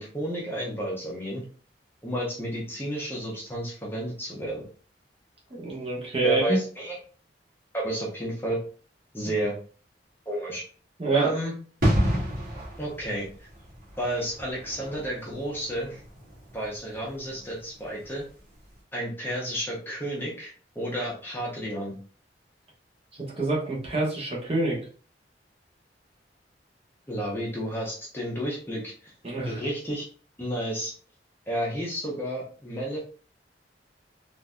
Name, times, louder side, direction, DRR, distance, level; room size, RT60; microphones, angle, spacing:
voice 1, 0.0-1.4 2.0-4.6 6.2-7.0 7.7-8.6 9.1-9.6 10.3-10.6 11.1-11.5 12.8-13.3 14.0-16.0 16.5-18.3 18.9-21.9 27.1-29.1 29.4-30.0 30.4-30.9 31.5-33.0, equal, 15° left, -4 dB, 0.8 m, -31 dB
voice 2, 5.5-6.6 11.0-11.3 23.1-24.8 29.2-29.6, right 3 dB, 35° right, -4 dB, 1.1 m, -26 dB
sound 1, 11.8-18.3 18.6-18.7, equal, 55° right, 1.5 m, -30 dB
3.8 x 2.6 x 2.3 m, 0.41 s
head